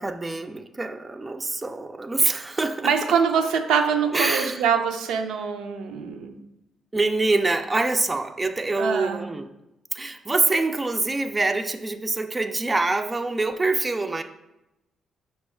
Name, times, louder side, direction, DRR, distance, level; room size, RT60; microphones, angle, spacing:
voice 1, 0.0-2.9 4.1-4.6 6.9-9.5 9.9-14.2, right 3 dB, 20° right, 8 dB, 0.3 m, -25 dB
voice 2, 2.8-6.3 8.8-9.2, right 6 dB, 85° right, 5 dB, 0.4 m, -24 dB
5.4 x 2.3 x 4.2 m, 0.90 s
cardioid pair, 90°, 0 cm